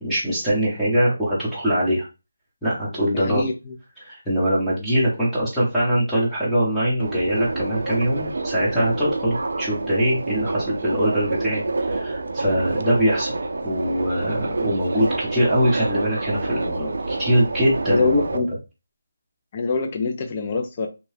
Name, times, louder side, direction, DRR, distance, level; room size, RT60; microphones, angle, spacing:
voice 1, 0.0-2.1 2.6-3.4 4.0-13.3 13.6-18.4, equal, ahead, -11 dB, 0.8 m, -22 dB
voice 2, 3.1-3.8 14.9-15.0 17.9-18.5 19.5-20.9, left 4 dB, 25° left, 5 dB, 0.4 m, -24 dB
Subway metro underground, 7.0-18.4, right 3 dB, 65° right, 0.4 m, -27 dB
2.7 x 2.2 x 3.2 m, 0.28 s
figure-of-eight pair, 170°, 0 cm